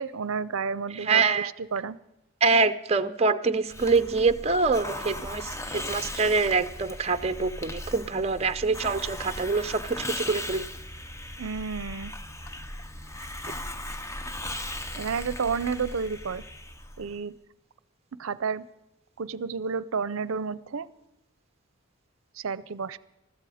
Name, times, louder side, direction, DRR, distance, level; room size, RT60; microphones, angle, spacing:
voice 1, 0.0-2.0 11.4-12.1 15.0-16.4 17.0-17.3 18.2-18.6 19.2-20.9 22.3-23.0, right 5 dB, 75° right, 17 dB, 0.5 m, -31 dB
voice 2, 0.9-1.5 2.4-10.6, right 4 dB, 30° right, 11 dB, 0.6 m, -25 dB
Hiss, 3.7-17.2, left 1 dB, 15° left, 0.6 m, -38 dB
21.0 x 14.0 x 5.0 m, 0.90 s
head